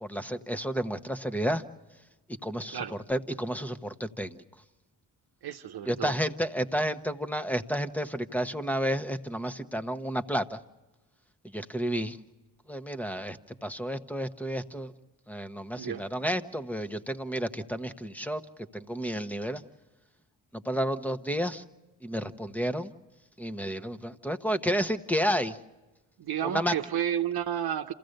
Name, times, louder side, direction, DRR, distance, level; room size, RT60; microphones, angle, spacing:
voice 1, 0.0-1.6 2.4-2.8 3.1-4.4 5.8-10.6 11.5-12.2 12.7-14.9 15.3-18.4 18.7-19.6 20.5-21.6 22.0-22.9 23.4-25.6 26.4-26.7, equal, 5° left, 10 dB, 1.2 m, -31 dB
voice 2, 5.4-6.2 15.8-16.0 26.2-27.9, right 9 dB, 70° right, 6 dB, 0.9 m, -31 dB
27.5 x 16.0 x 6.7 m, 1.1 s
supercardioid pair, 50°, 40 cm